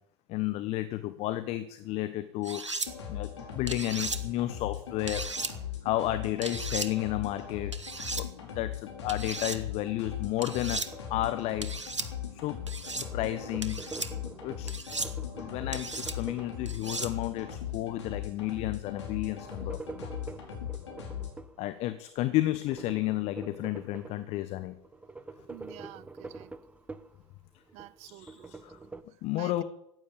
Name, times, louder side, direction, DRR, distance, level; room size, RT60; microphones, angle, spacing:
voice 1, 0.3-2.6 3.1-5.3 5.8-7.7 8.1-11.8 12.3-12.6 13.0-13.9 14.4-14.7 15.4-20.1 21.6-24.8 28.0-28.8 29.2-29.6, left 15 dB, 45° left, 1.1 m, -32 dB
sound 1, 2.4-2.9 3.7-4.2 5.1-5.5 6.4-6.9 7.7-8.2 9.1-9.6 10.4-10.9 11.6-12.1 12.7-13.1 13.6-14.1 14.7-15.1 15.7-16.2 16.7-17.1, right 3 dB, 85° right, 1.2 m, -35 dB
sound 2, 2.8-21.3, left 9 dB, 70° left, 4.7 m, -39 dB
sound 3, 10.8-12.2 12.5-17.2 19.1-21.6 22.5-24.5 24.8-27.2 27.6-29.0, right 3 dB, 10° right, 0.9 m, -46 dB
voice 2, 25.5-26.5 27.7-28.5 29.4-29.6, right 16 dB, 45° right, 0.8 m, -49 dB
15.0 x 9.4 x 8.6 m
figure-of-eight pair, 75°, 15 cm